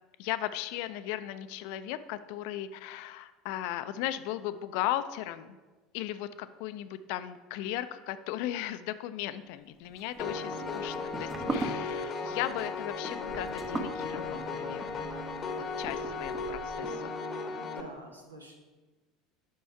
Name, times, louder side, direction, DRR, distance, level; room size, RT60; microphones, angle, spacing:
voice 1, 0.2-5.6 5.9-15.1 15.8-17.1, left 13 dB, 60° left, 13 dB, 0.4 m, -36 dB
sound 1, 9.9-16.9, right 3 dB, 25° right, 0.7 m, -40 dB
Piano, 10.2-17.8, left 4 dB, 35° left, 0.8 m, -36 dB
voice 2, 17.6-18.6, right 1 dB, 85° right, 2 dB, 0.9 m, -48 dB
6.5 x 5.5 x 4.6 m, 1.3 s
figure-of-eight pair, 70°, 0 cm